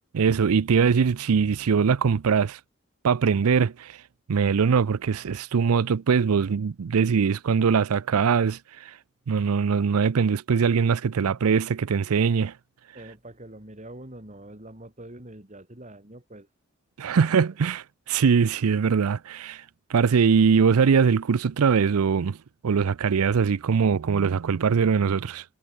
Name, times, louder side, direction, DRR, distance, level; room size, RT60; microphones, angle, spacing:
voice 1, 0.1-2.6 3.0-4.0 4.3-8.9 9.3-12.5 17.0-19.6 19.9-22.4 22.6-25.4, right 6 dB, 85° right, 0.5 m, -22 dB
voice 2, 12.9-16.5 17.1-17.4, right 1 dB, 35° right, 3.3 m, -44 dB
head